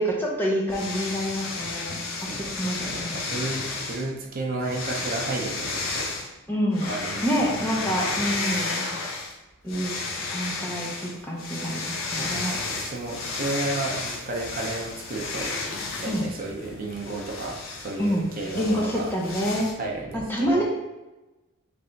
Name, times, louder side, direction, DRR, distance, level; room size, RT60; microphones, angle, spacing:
voice 1, 0.0-3.2 6.5-6.9 7.2-8.8 9.6-9.9 10.3-12.6 16.1-16.3 18.0-18.3 18.5-19.7 20.1-20.6, equal, 10° left, -4 dB, 0.7 m, -27 dB
sound 1, 0.7-4.1 4.6-6.3 6.7-9.3 9.7-19.7, left 3 dB, 65° left, 0.7 m, -32 dB
voice 2, 2.3-6.1 6.9-7.5 8.0-8.2 12.2-15.6 16.0-19.1 19.8-20.6, right 2 dB, 40° right, -1 dB, 0.7 m, -33 dB
3.4 x 3.3 x 3.9 m, 1.1 s
head